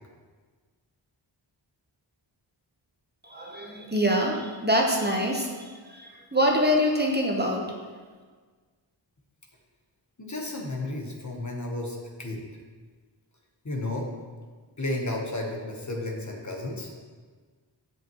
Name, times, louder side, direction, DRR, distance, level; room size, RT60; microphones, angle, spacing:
voice 1, 3.3-7.6, equal, 20° right, 0 dB, 1.1 m, -25 dB
voice 2, 10.2-12.4 13.6-14.1 14.8-16.9, left 2 dB, 40° left, 0 dB, 1.2 m, -32 dB
8.4 x 7.7 x 3.1 m, 1.5 s
wide cardioid pair, 75°, 45 cm